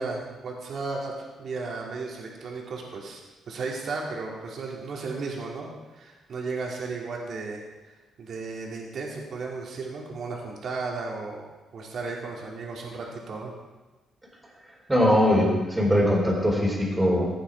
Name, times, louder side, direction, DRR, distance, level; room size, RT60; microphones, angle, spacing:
voice 1, 0.0-3.2 3.5-7.6 8.2-11.4 11.7-13.5, right 3 dB, 55° right, -1 dB, 2.9 m, -34 dB
voice 2, 14.9-17.3, equal, 15° right, -1 dB, 4.1 m, -21 dB
15.5 x 9.0 x 4.8 m, 1.2 s
cardioid pair, 90°, 0 cm